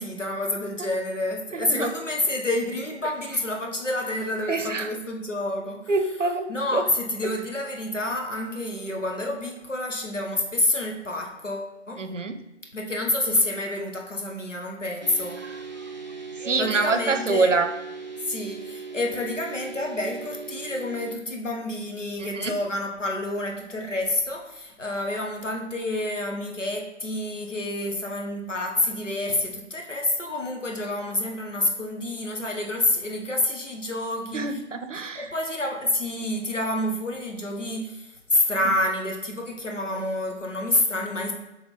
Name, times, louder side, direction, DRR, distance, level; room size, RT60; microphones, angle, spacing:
voice 1, 0.0-5.9 6.5-12.0 12.7-15.4 16.6-17.5 18.3-34.6 35.1-41.3, left 1 dB, 85° left, 1 dB, 1.4 m, -28 dB
voice 2, 1.5-1.9 4.5-4.9 5.9-6.8 7.2-7.3 12.0-12.4 15.4-15.6 16.4-17.7 22.2-22.5 34.3-35.3, right 3 dB, 80° right, 9 dB, 0.7 m, -26 dB
sound 1, 15.0-21.2, right 4 dB, 40° right, 0.5 m, -38 dB
7.0 x 3.5 x 4.1 m, 0.96 s
figure-of-eight pair, 155°, 36 cm